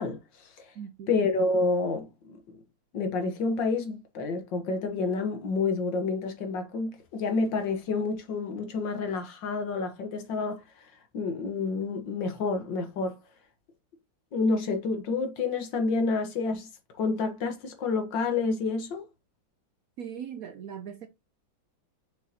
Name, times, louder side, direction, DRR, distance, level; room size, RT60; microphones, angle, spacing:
voice 1, 0.0-0.7 1.1-2.6 2.9-13.2 14.3-16.7 17.0-19.0, left 3 dB, 70° left, 2.0 m, -29 dB
voice 2, 0.8-1.1 20.0-21.1, right 8 dB, 65° right, 0.9 m, -39 dB
7.1 x 5.6 x 2.9 m
omnidirectional pair, 2.1 m